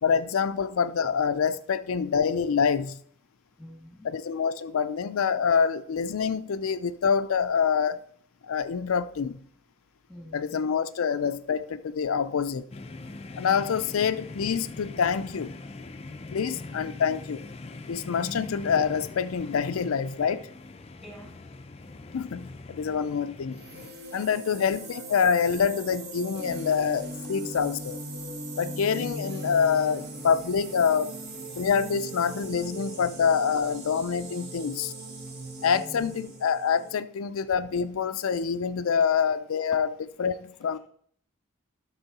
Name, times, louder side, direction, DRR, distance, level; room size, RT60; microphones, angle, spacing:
voice 1, 0.0-3.0 4.0-8.0 8.4-9.4 10.3-12.7 13.4-15.5 16.3-17.4 17.9-20.4 22.1-23.6 24.1-28.0 28.6-31.1 31.6-34.9 35.6-39.9 40.2-40.8, left 6 dB, 85° left, 0.4 m, -26 dB
voice 2, 3.6-4.1 10.1-10.5 13.8-13.9 16.3-16.9 21.0-21.3 28.9-29.3 31.3-31.4 32.6-32.7 35.7-36.2, left 1 dB, ahead, 1.9 m, -46 dB
sound 1, 12.7-23.9, left 2 dB, 30° left, 0.5 m, -42 dB
sound 2, 23.5-36.9, right 1 dB, 50° right, 1.5 m, -39 dB
12.0 x 6.1 x 4.1 m
head